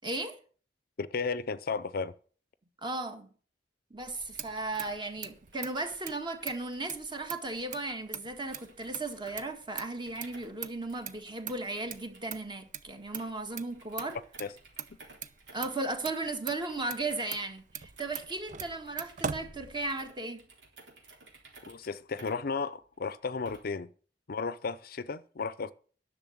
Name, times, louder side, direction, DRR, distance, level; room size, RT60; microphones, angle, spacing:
voice 1, 0.0-0.4 2.8-3.3 3.9-14.2 15.5-20.4, right 2 dB, 25° right, 1.7 m, -36 dB
voice 2, 1.0-2.1 14.4-14.5 21.7-23.9 24.3-25.7, left 4 dB, 55° left, 0.6 m, -34 dB
Motor vehicle (road), 4.0-20.2, right 7 dB, 45° right, 0.7 m, -43 dB
sound 1, 4.3-23.9, right 3 dB, 80° right, 3.7 m, -58 dB
10.5 x 6.7 x 8.5 m
head